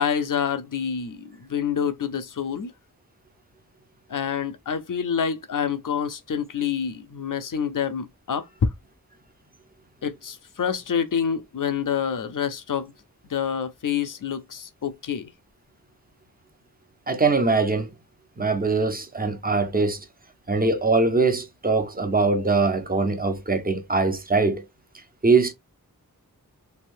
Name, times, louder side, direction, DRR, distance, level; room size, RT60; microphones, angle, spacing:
voice 1, 0.0-2.7 4.1-8.7 10.0-12.9 13.3-15.3, left 7 dB, 65° left, 0.6 m, -27 dB
voice 2, 17.1-17.9 18.4-20.0 20.5-24.6 25.2-25.5, right 3 dB, 25° right, 0.8 m, -22 dB
3.4 x 2.6 x 2.6 m
wide cardioid pair, 65°, 35 cm